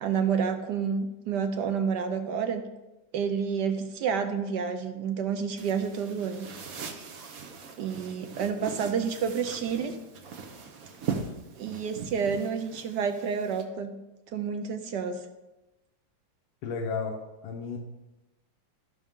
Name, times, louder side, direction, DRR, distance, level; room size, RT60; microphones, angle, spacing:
voice 1, 0.0-2.6 3.1-6.5 7.8-9.9 11.6-13.9 14.3-15.2, right 6 dB, 70° right, 7 dB, 1.2 m, -29 dB
sound 1, 5.6-13.6, right 5 dB, 55° right, 1.2 m, -40 dB
voice 2, 16.6-17.2 17.4-17.8, left 5 dB, 90° left, 2 dB, 1.7 m, -32 dB
13.5 x 6.0 x 3.6 m, 1.0 s
omnidirectional pair, 2.1 m